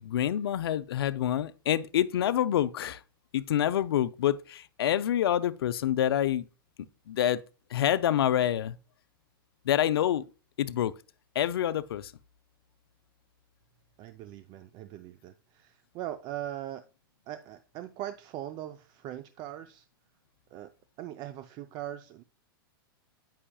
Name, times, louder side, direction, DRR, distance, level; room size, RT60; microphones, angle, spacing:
voice 1, 0.0-3.0 3.3-6.5 7.1-7.4 7.7-8.8 9.7-10.2 10.6-10.9 11.4-12.1, left 11 dB, 80° left, 0.4 m, -27 dB
voice 2, 14.0-16.8 17.3-19.9 20.5-20.7 21.0-22.2, right 12 dB, 35° right, 0.4 m, -40 dB
8.6 x 5.5 x 2.3 m
hypercardioid pair, 125°, 12 cm